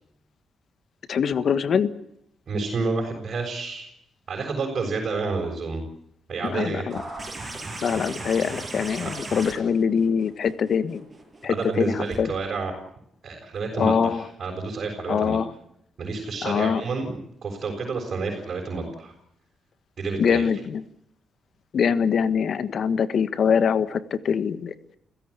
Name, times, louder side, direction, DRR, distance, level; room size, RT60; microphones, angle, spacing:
voice 1, 1.1-1.9 6.4-7.0 7.8-11.1 11.4-12.3 13.7-14.2 15.1-15.5 16.4-16.8 20.2-20.8 21.7-24.7, left 7 dB, 60° left, 13 dB, 1.5 m, -23 dB
voice 2, 2.5-3.9 4.3-5.8 6.3-6.9 11.5-12.7 13.2-15.4 16.0-17.1 17.4-19.1 20.0-20.4, right 4 dB, 50° right, 1 dB, 6.8 m, -29 dB
sound 1, 6.9-12.2 13.6-13.7, right 2 dB, 25° right, 7.6 m, -37 dB
30.0 x 17.0 x 8.3 m, 0.75 s
cardioid pair, 105°, 0 cm